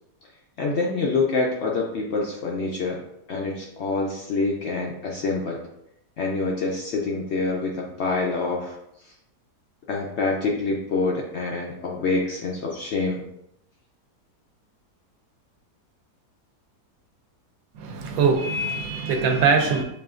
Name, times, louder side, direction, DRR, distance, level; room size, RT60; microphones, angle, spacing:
voice 1, 0.6-3.0 3.3-5.6 6.2-8.8 9.0-9.1 9.9-13.2, left 3 dB, 75° left, 0.6 m, -26 dB
voice 2, 17.7-19.8, right 5 dB, 65° right, 1.0 m, -22 dB
6.7 x 2.5 x 2.4 m
omnidirectional pair, 1.8 m